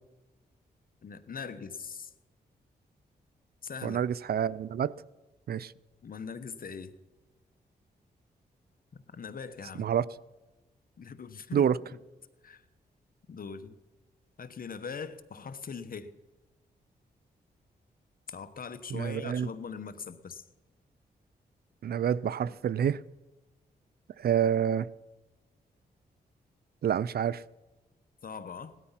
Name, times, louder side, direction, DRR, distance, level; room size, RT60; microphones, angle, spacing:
voice 1, 1.0-2.1 3.6-4.0 6.0-6.9 8.9-9.9 11.0-12.0 12.4-12.6 13.3-13.8 14.4-16.2 18.3-20.4 28.2-28.7, left 6 dB, 55° left, 1.2 m, -41 dB
voice 2, 3.8-4.9 5.5-5.7 9.8-10.1 11.5-11.8 18.9-19.5 21.8-23.0 24.2-24.9 26.8-27.4, right 9 dB, 65° right, 0.5 m, -27 dB
17.5 x 12.5 x 5.8 m
cardioid pair, 60°, 17 cm